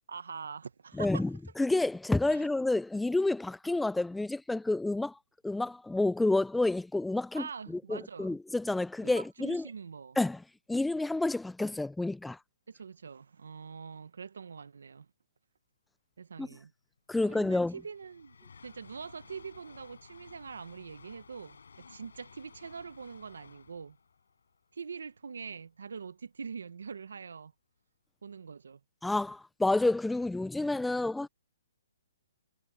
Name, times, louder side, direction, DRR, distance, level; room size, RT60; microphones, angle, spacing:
voice 1, 0.1-1.3 2.3-2.5 7.3-8.4 9.0-10.2 12.7-15.1 16.2-16.7 17.2-24.0 24.7-27.5 28.2-28.8, right 5 dB, 85° right, 1.1 m, -44 dB
voice 2, 1.0-5.1 5.4-9.6 10.2-10.4 10.7-12.4 16.4-16.5 17.1-17.7 29.0-31.3, left 2 dB, 5° left, 0.3 m, -29 dB
sound 1, 17.0-17.1 17.2-25.5, left 5 dB, 90° left, 6.2 m, -56 dB
hypercardioid pair, 155°, 0 cm